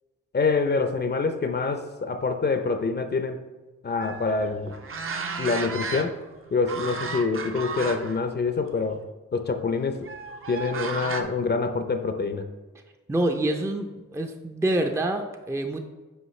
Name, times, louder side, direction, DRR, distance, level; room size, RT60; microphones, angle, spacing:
voice 1, 0.3-3.4 3.8-4.7 5.4-6.2 6.5-9.0 9.3-10.1 10.5-12.5, left 4 dB, 35° left, 7 dB, 0.6 m, -26 dB
sound 1, 4.0-6.3 6.7-8.2 8.6-8.8 10.0-11.2, right 4 dB, 45° right, 0.8 m, -34 dB
voice 2, 13.1-15.8, right 1 dB, 10° right, 4 dB, 0.5 m, -26 dB
8.1 x 4.6 x 3.2 m, 1.2 s
cardioid pair, 60°, 30 cm